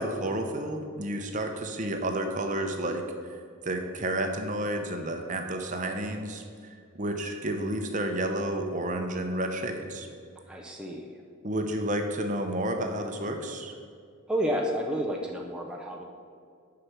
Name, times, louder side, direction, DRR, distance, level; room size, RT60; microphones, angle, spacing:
voice 1, 0.0-3.0 3.6-6.4 6.9-10.1 11.4-13.7, right 1 dB, 35° right, 4 dB, 0.8 m, -31 dB
voice 2, 10.5-11.2 14.3-16.0, equal, 5° right, -1 dB, 0.6 m, -30 dB
6.6 x 5.9 x 7.3 m, 2.3 s
head